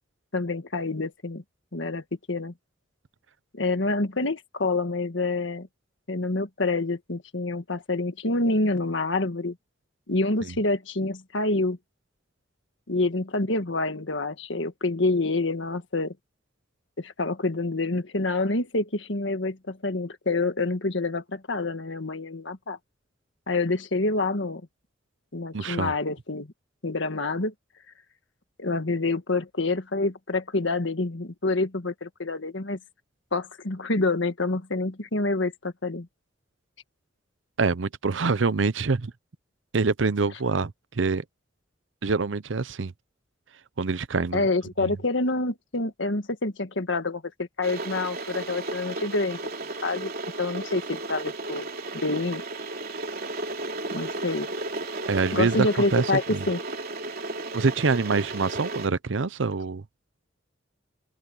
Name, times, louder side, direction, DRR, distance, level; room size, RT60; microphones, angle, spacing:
voice 1, 0.3-1.4 1.7-2.5 3.5-5.7 6.1-9.6 10.1-11.8 12.9-16.1 17.0-22.8 23.5-24.6 25.3-26.5 26.8-27.5 28.6-32.8 33.3-36.1 44.3-50.1 50.4-51.7 52.0-52.4 53.9-54.5 55.3-56.6, left 2 dB, 70° left, 1.7 m, -27 dB
voice 2, 25.5-25.9 37.6-39.1 39.7-41.2 42.0-42.9 43.8-44.4 44.8-45.0 55.1-56.4 57.5-59.8, right 4 dB, 75° right, 0.7 m, -25 dB
Water / Boiling, 47.6-58.9, right 2 dB, 50° right, 3.2 m, -34 dB
open air
head